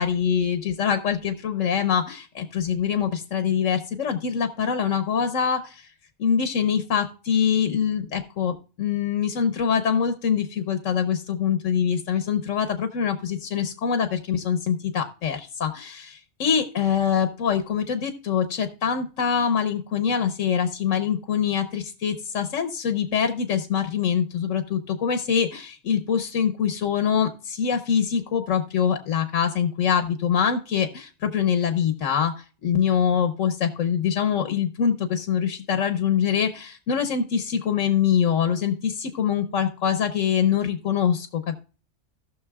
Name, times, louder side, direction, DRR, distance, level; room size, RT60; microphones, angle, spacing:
voice 1, 0.0-5.9 6.2-41.6, left 7 dB, 90° left, 8 dB, 1.2 m, -24 dB
17.5 x 6.3 x 2.3 m, 0.36 s
omnidirectional pair, 1.3 m